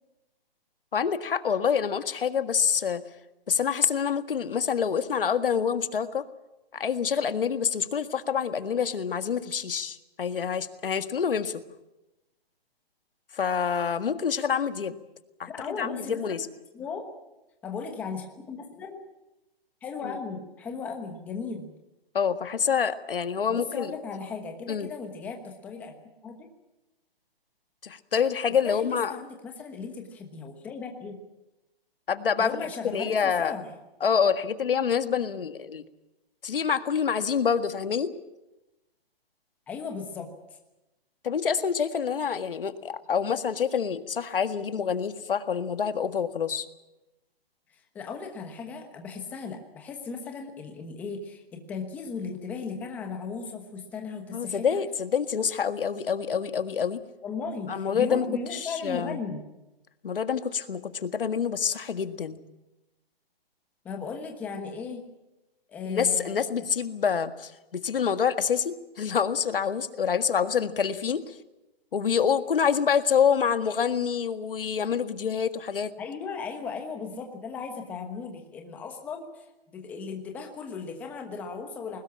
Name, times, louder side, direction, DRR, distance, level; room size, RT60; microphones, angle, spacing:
voice 1, 0.9-3.0 3.5-6.2 6.7-11.6 13.3-15.0 15.4-15.5 15.8-16.5 20.0-20.1 22.1-23.9 24.7-24.9 27.8-29.1 32.1-32.5 32.9-33.5 34.0-35.8 36.4-38.1 41.2-46.7 54.3-57.0 57.7-58.3 58.5-59.2 60.0-62.4 65.8-71.4 71.9-75.9, left 7 dB, 65° left, 10 dB, 1.8 m, -27 dB
voice 2, 15.5-16.5 16.7-17.1 17.6-19.0 19.8-21.7 23.5-26.0 26.2-26.4 28.6-31.2 32.4-33.7 39.7-40.3 47.9-54.8 57.2-59.4 63.8-65.0 65.7-66.4 76.0-79.5 79.7-82.0, left 5 dB, 5° left, 3 dB, 1.2 m, -36 dB
21.5 x 19.5 x 8.6 m, 0.97 s
hypercardioid pair, 170°, 30 cm